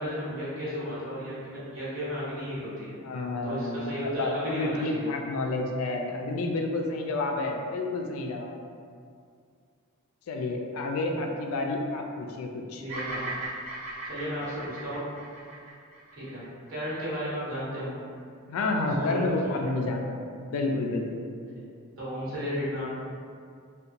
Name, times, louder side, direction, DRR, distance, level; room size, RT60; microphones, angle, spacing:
voice 1, 0.0-2.9 3.4-5.1 12.8-13.3 14.1-15.0 16.1-16.4 16.7-18.0 19.0-19.2 19.5-19.7 22.0-22.9, equal, 60° right, -10 dB, 1.1 m, -34 dB
voice 2, 3.0-8.6 10.3-12.8 18.5-20.3 20.5-21.3, left 2 dB, 75° left, 2 dB, 0.3 m, -30 dB
Bird vocalization bird call bird song, 12.9-17.2, right 2 dB, 30° right, 0.7 m, -38 dB
2.8 x 2.2 x 2.5 m, 2.2 s
head